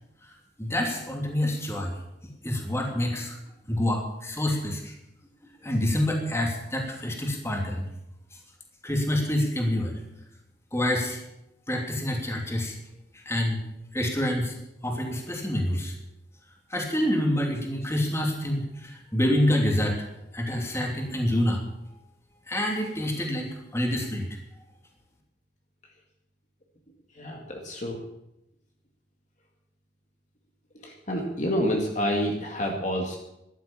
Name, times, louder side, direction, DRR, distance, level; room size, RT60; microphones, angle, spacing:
voice 1, 0.6-1.9 2.4-3.4 3.7-4.9 5.6-7.8 8.8-10.0 10.7-11.2 11.7-12.8 13.1-13.6 13.9-14.6 14.8-15.9 16.7-20.1 20.3-21.6 22.5-24.3, left 1 dB, 15° left, 1 dB, 2.9 m, -27 dB
voice 2, 27.2-28.0 30.8-33.2, equal, 40° left, 1 dB, 2.1 m, -28 dB
13.5 x 12.0 x 7.2 m, 0.87 s
head